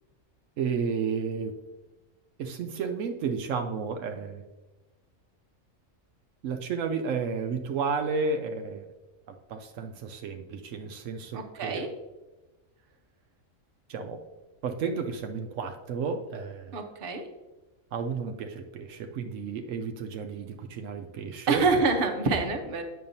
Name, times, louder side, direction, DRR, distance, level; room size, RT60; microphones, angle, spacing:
voice 1, 0.6-1.6 2.4-4.4 6.4-8.9 9.3-11.9 13.9-14.2 14.6-16.8 17.9-21.6, right 5 dB, 80° right, 5 dB, 1.0 m, -32 dB
voice 2, 11.3-11.9 16.7-17.2 21.5-22.8, right 4 dB, 50° right, 4 dB, 0.9 m, -26 dB
8.6 x 6.5 x 2.7 m, 1.1 s
omnidirectional pair, 1.3 m